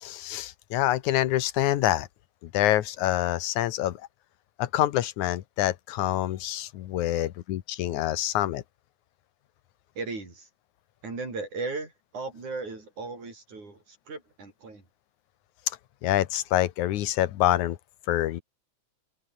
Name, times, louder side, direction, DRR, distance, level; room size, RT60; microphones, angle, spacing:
voice 1, 0.0-2.1 2.4-4.0 4.6-8.6 16.0-17.8 18.1-18.4, left 13 dB, 80° left, 2.5 m, -26 dB
voice 2, 10.0-10.5 11.0-14.8, right 3 dB, 80° right, 8.9 m, -36 dB
omnidirectional pair, 3.4 m